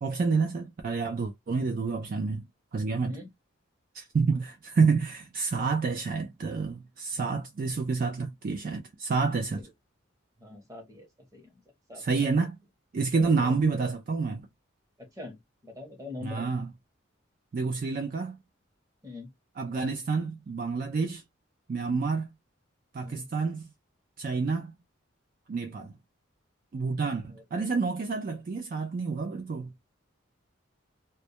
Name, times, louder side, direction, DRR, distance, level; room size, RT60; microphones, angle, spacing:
voice 1, 0.0-2.5 2.7-3.2 3.9-9.6 12.0-12.6 12.9-14.5 16.2-16.7 17.5-18.4 19.6-21.2 21.7-22.3 22.9-23.7 24.2-24.7 25.5-25.9 26.7-29.7, right 4 dB, 45° right, 0.3 m, -28 dB
voice 2, 10.4-11.6 11.9-12.3 13.1-13.5 15.0-16.5 19.0-19.3 21.8-22.0 23.0-23.3 25.7-25.9 27.3-27.6, left 2 dB, 15° right, 0.8 m, -44 dB
2.2 x 2.1 x 2.8 m
head